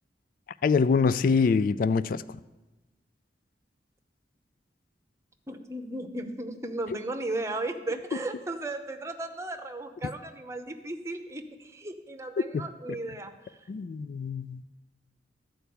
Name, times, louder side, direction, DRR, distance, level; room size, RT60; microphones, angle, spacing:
voice 1, 0.6-2.2 12.5-12.6 13.7-14.6, left 5 dB, 50° left, 15 dB, 0.3 m, -24 dB
voice 2, 5.5-13.4, right 2 dB, 15° right, 5 dB, 0.7 m, -35 dB
12.5 x 4.6 x 8.4 m, 1.1 s
head